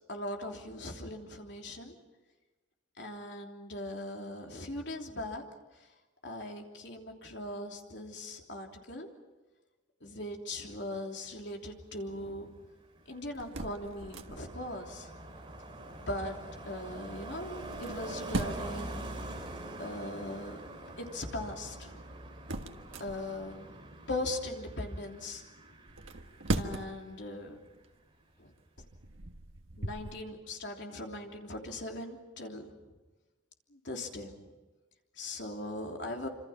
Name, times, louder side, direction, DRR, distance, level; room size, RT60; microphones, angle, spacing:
voice 1, 0.1-1.9 3.0-5.4 6.2-9.1 10.0-12.5 13.1-15.1 15.8-16.3 16.6-19.0 19.8-20.6 21.0-22.0 23.0-23.7 24.1-25.4 26.6-27.6 28.4-28.5 29.8-32.6 33.7-34.5 35.2-36.3, left 1 dB, 65° left, 2 dB, 3.2 m, -39 dB
Car passing by, 12.6-27.4 27.6-28.0, right 1 dB, 25° right, 3.6 m, -45 dB
sound 1, 13.3-14.6 17.6-18.8 21.7-23.6 25.8-27.1 27.7-27.9 28.6-30.1, right 2 dB, 90° right, 1.5 m, -38 dB
26.5 x 26.5 x 5.9 m, 1.2 s
head